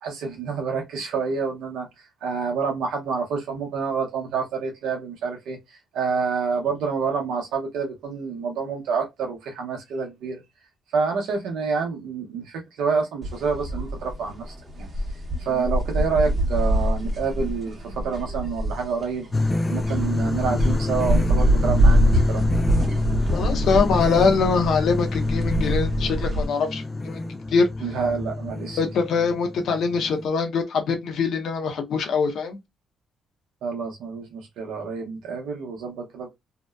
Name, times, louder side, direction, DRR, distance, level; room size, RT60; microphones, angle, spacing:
voice 1, 0.0-10.4 10.9-14.9 15.4-19.3 19.7-22.5 27.8-28.8 33.6-36.3, right 5 dB, 85° right, 0.7 m, -28 dB
sound 1, 13.2-26.5, equal, 35° right, 0.8 m, -24 dB
sound 2, 19.3-30.3, left 2 dB, 25° left, 0.3 m, -27 dB
voice 2, 23.3-27.7 28.8-32.6, left 5 dB, 70° left, 0.6 m, -23 dB
2.7 x 2.1 x 2.2 m
cardioid pair, 90°, 0 cm